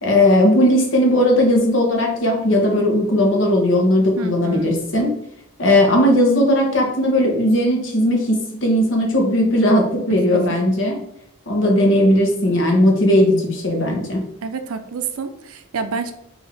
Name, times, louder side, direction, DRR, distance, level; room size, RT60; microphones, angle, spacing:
voice 1, 0.0-5.1 5.6-11.0 11.5-14.2, left 1 dB, 60° left, 0 dB, 0.9 m, -17 dB
voice 2, 4.2-4.7 10.3-10.4 14.4-16.1, right 5 dB, 85° right, 8 dB, 0.5 m, -28 dB
4.7 x 2.7 x 3.4 m, 0.75 s
head